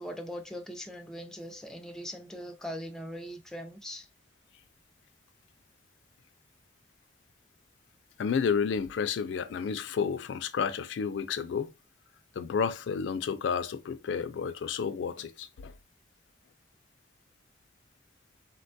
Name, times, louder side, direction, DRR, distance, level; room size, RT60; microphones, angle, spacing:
voice 1, 0.0-4.1, equal, 5° left, 0.4 m, -40 dB
voice 2, 8.2-11.7 12.3-15.7, left 6 dB, 75° left, 0.3 m, -31 dB
3.8 x 2.2 x 2.6 m
head